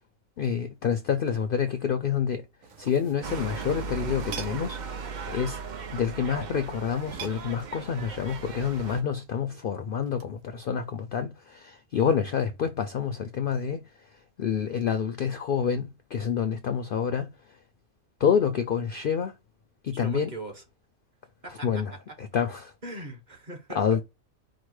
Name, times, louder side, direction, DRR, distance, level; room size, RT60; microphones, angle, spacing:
voice 1, 0.4-2.4 2.8-4.8 5.3-5.6 5.9-17.6 18.2-19.4 19.8-20.3 21.5-22.7 23.7-24.0, left 7 dB, 60° left, 0.6 m, -28 dB
sound 1, 2.5-4.9 7.0-8.0 10.1-10.4, right 6 dB, 80° right, 1.3 m, -42 dB
sound 2, 3.2-9.0, right 5 dB, 55° right, 0.5 m, -37 dB
voice 2, 19.9-20.6 21.4-21.8 22.8-24.0, right 2 dB, 35° right, 1.1 m, -40 dB
4.8 x 2.1 x 4.7 m
omnidirectional pair, 1.4 m